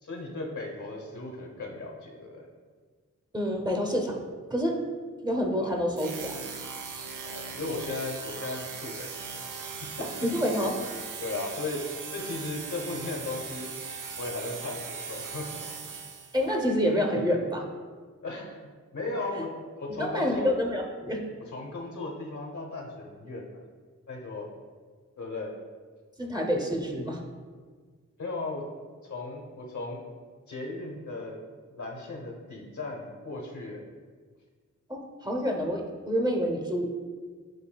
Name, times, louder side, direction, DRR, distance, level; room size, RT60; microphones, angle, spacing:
voice 1, 0.0-2.5 5.6-5.7 7.2-9.3 9.6-10.1 10.6-10.7 11.2-11.8 12.1-13.7 14.2-15.5 18.2-18.6 18.9-19.5 19.8-20.5 21.5-23.6 24.1-24.5 25.2-25.5 28.2-28.6 29.0-30.0 30.5-31.4 31.7-33.8, left 2 dB, 70° left, -1 dB, 0.9 m, -36 dB
voice 2, 3.3-4.2 4.5-4.8 5.2-6.5 10.0-10.8 16.3-17.7 20.0-21.3 26.2-27.2 34.9-36.9, equal, 15° right, 1 dB, 0.7 m, -28 dB
sound 1, 6.0-16.5, right 5 dB, 85° right, 0.5 m, -39 dB
7.6 x 2.7 x 2.2 m, 1.6 s
cardioid pair, 45°, 30 cm